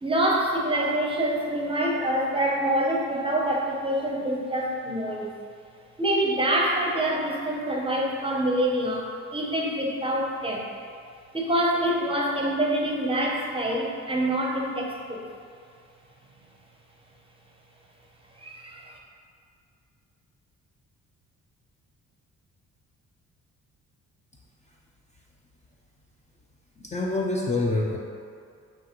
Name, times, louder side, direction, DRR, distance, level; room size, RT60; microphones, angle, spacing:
voice 1, 0.0-5.3 6.0-10.7 11.3-15.2 18.4-19.0, right 1 dB, 20° right, -2 dB, 0.6 m, -26 dB
voice 2, 26.8-28.0, left 2 dB, 25° left, -3 dB, 0.4 m, -26 dB
5.0 x 2.8 x 3.0 m, 2.3 s
cardioid pair, 90°, 30 cm